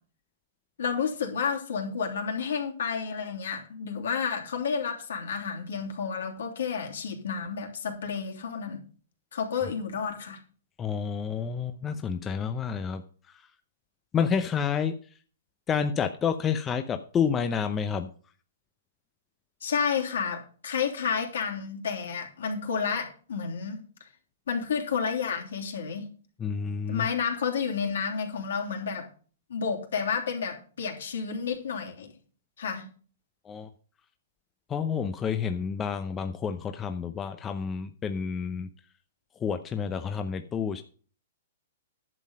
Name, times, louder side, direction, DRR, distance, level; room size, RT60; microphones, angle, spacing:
voice 1, 0.8-8.8 9.3-10.4 19.6-23.8 24.5-26.1 26.9-29.1 29.5-32.1 32.6-32.9, left 6 dB, 70° left, 1 dB, 3.2 m, -31 dB
voice 2, 10.8-13.0 14.1-15.0 15.7-18.1 26.4-27.1 33.4-33.7 34.7-38.7 39.4-40.8, left 6 dB, 20° left, 8 dB, 0.7 m, -29 dB
11.0 x 7.4 x 5.5 m, 0.41 s
hypercardioid pair, 125°, 0 cm